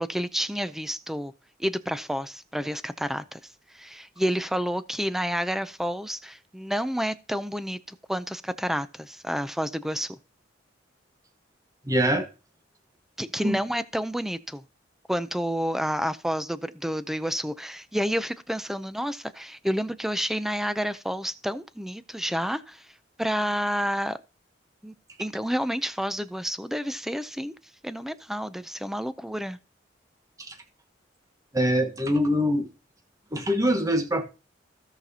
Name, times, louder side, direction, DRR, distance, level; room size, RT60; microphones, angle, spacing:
voice 1, 0.0-1.3 1.6-3.4 3.7-10.2 13.2-14.6 15.1-22.9 23.2-24.2 24.8-27.5 27.8-29.6, equal, ahead, 0.5 m, -29 dB
voice 2, 11.8-12.3 13.4-13.6 30.4-30.5 31.5-32.7 33.3-34.2, equal, 20° right, 1.2 m, -24 dB
16.0 x 5.7 x 2.8 m
head